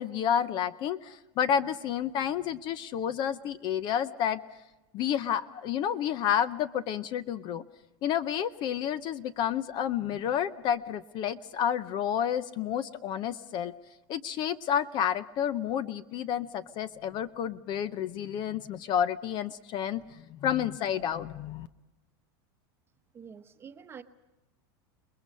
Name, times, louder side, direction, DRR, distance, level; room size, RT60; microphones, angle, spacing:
voice 1, 0.0-4.4 4.9-7.6 8.0-13.7 14.1-20.0 20.3-21.7, left 9 dB, 35° left, 16 dB, 0.6 m, -30 dB
voice 2, 23.1-24.0, right 7 dB, 20° right, 8 dB, 1.0 m, -47 dB
29.5 x 21.0 x 5.4 m, 1.0 s
supercardioid pair, 150°, 13 cm